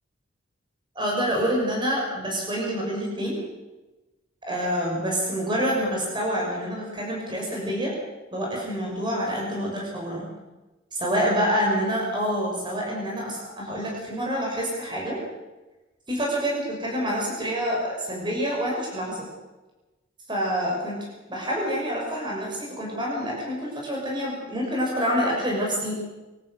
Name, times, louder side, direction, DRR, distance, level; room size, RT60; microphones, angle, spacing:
voice 1, 0.9-3.4 4.5-7.9 8.3-10.3 11.0-15.2 16.1-19.3 20.3-21.0 21.3-26.0, equal, 25° right, -2 dB, 6.7 m, -27 dB
25.5 x 13.5 x 8.0 m, 1.1 s
head